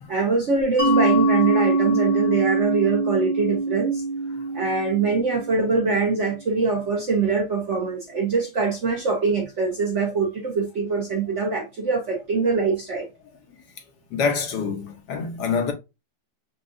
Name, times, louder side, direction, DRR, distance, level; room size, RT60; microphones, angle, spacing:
voice 1, 0.1-4.0 4.5-13.1, right 4 dB, 55° right, 0.9 m, -23 dB
Mallet percussion, 0.8-6.2, right 2 dB, 25° left, 0.9 m, -24 dB
voice 2, 14.1-15.7, left 5 dB, 70° left, 1.3 m, -26 dB
5.3 x 2.3 x 2.5 m
omnidirectional pair, 2.0 m